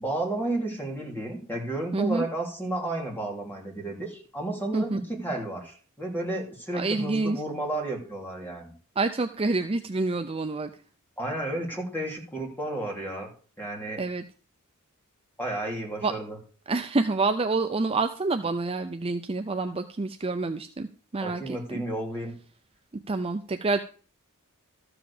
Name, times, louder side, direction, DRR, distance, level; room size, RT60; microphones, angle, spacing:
voice 1, 0.0-8.7 11.2-13.3 13.6-14.0 15.4-16.4 21.2-22.3, right 2 dB, 10° left, -1 dB, 3.2 m, -32 dB
voice 2, 1.9-2.3 4.7-5.0 6.7-7.4 9.0-10.7 14.0-14.2 16.0-16.1 16.7-20.9 21.1-21.8 23.1-23.8, right 3 dB, 25° right, 7 dB, 0.5 m, -27 dB
13.5 x 4.9 x 7.1 m, 0.39 s
head